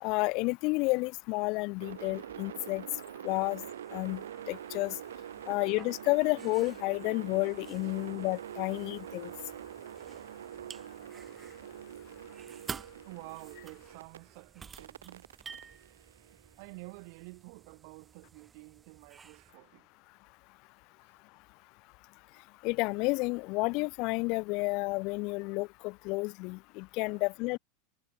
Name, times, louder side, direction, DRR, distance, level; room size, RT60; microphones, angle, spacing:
voice 1, 0.0-2.8 3.2-3.6 3.9-4.2 4.5-5.0 5.5-9.3 22.6-27.6, left 26 dB, 50° left, 0.4 m, -31 dB
sound 1, 1.8-14.2 14.8-16.9, right 10 dB, 70° right, 1.1 m, -45 dB
sound 2, 3.3-19.5, right 6 dB, 20° right, 1.9 m, -52 dB
voice 2, 12.0-15.3 16.6-19.9 22.3-22.4 27.1-27.2, right 32 dB, 55° right, 5.3 m, -51 dB
figure-of-eight pair, 85°, 0 cm